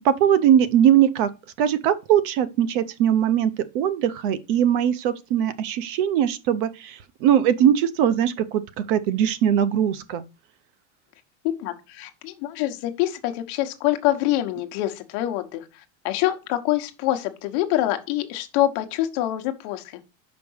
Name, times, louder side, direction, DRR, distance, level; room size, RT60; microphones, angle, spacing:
voice 1, 0.0-1.3 1.6-10.2, right 10 dB, 45° right, 0.7 m, -21 dB
voice 2, 11.6-15.6 16.0-19.8, left 14 dB, 45° left, 1.1 m, -25 dB
5.9 x 5.2 x 6.3 m
supercardioid pair, 175°, 36 cm